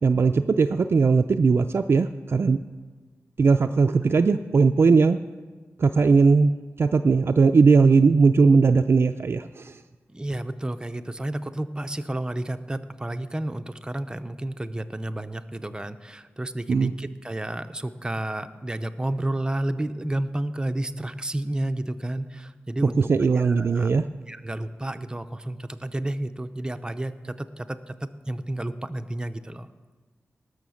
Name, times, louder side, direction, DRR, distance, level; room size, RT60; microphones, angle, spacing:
voice 1, 0.0-2.6 3.4-5.2 5.8-6.5 6.8-9.8 16.7-16.9 23.0-24.1, right 4 dB, 55° right, 6 dB, 0.4 m, -19 dB
voice 2, 10.1-23.9 24.3-27.9 28.2-29.7, right 1 dB, 15° right, 9 dB, 0.6 m, -31 dB
19.0 x 6.5 x 6.3 m, 1.4 s
wide cardioid pair, 95°, 5 cm